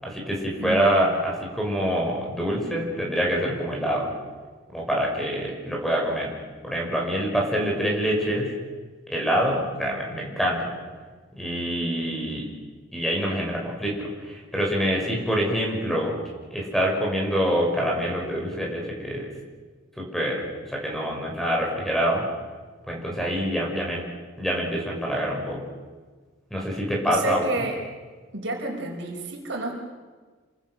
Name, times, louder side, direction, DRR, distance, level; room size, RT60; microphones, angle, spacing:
voice 1, 0.0-4.1 4.7-6.3 6.6-8.5 9.1-10.7 11.4-12.4 12.9-16.1 16.5-19.3 20.0-22.2 22.9-24.0 24.4-25.6 26.5-27.5, equal, ahead, -1 dB, 6.0 m, -26 dB
voice 2, 0.6-1.2 27.1-27.8 28.3-29.7, right 2 dB, 60° right, 1 dB, 5.6 m, -31 dB
29.0 x 25.0 x 6.5 m, 1.4 s
head